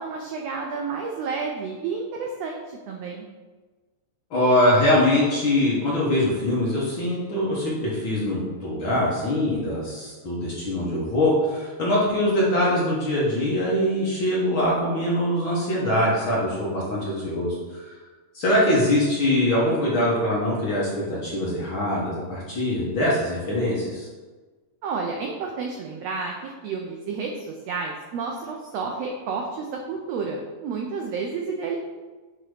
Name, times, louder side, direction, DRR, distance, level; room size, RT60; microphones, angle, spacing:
voice 1, 0.0-3.3 24.8-31.8, right 4 dB, 80° right, 1 dB, 1.5 m, -31 dB
voice 2, 4.3-18.0 18.3-24.1, left 1 dB, 55° left, -6 dB, 1.6 m, -23 dB
7.9 x 2.9 x 4.9 m, 1.3 s
omnidirectional pair, 3.6 m